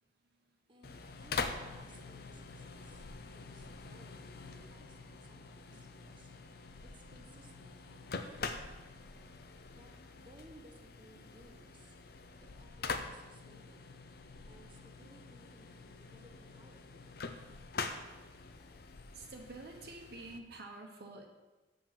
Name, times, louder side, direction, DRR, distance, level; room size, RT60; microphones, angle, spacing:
voice 1, 0.7-6.3 6.8-8.8 9.7-12.0 12.4-13.9 14.5-17.1, right 1 dB, 30° right, 1 dB, 1.2 m, -61 dB
sound 1, 0.8-20.4, left 4 dB, 55° left, 0.6 m, -45 dB
voice 2, 19.1-21.3, right 2 dB, 60° right, 1 dB, 0.9 m, -48 dB
7.2 x 5.4 x 7.2 m, 1.2 s
head